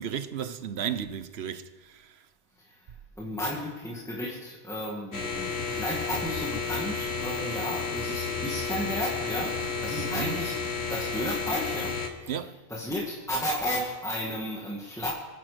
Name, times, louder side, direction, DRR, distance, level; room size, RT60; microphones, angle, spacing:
voice 1, 0.0-2.3 9.9-10.4 12.3-12.6, right 8 dB, 80° right, 1.1 m, -34 dB
voice 2, 3.2-10.6 10.9-12.3 12.7-15.1, equal, 5° left, 2.1 m, -33 dB
sound 1, 5.1-12.1, left 5 dB, 85° left, 1.8 m, -32 dB
26.0 x 9.9 x 5.2 m
omnidirectional pair, 1.0 m